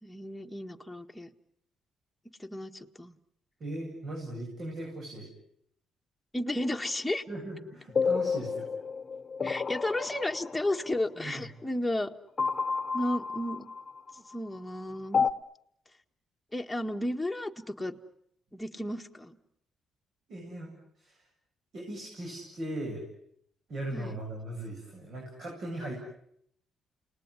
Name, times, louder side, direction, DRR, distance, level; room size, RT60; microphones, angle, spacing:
voice 1, 0.0-1.3 2.4-3.1 6.3-7.2 9.4-12.1 12.9-13.7 14.1-15.3 16.5-17.9 18.5-19.4 23.9-24.2, left 1 dB, 5° left, 3 dB, 1.7 m, -33 dB
voice 2, 3.6-5.3 7.3-8.7 11.2-11.3 20.3-20.7 21.0-21.2 21.7-23.0 23.7-25.9, right 1 dB, 55° right, 0 dB, 8.0 m, -38 dB
sound 1, 8.0-11.0 12.4-14.4 15.1-15.3, left 5 dB, 35° left, 1.1 m, -30 dB
29.5 x 19.5 x 9.8 m, 0.73 s
cardioid pair, 90°, 0 cm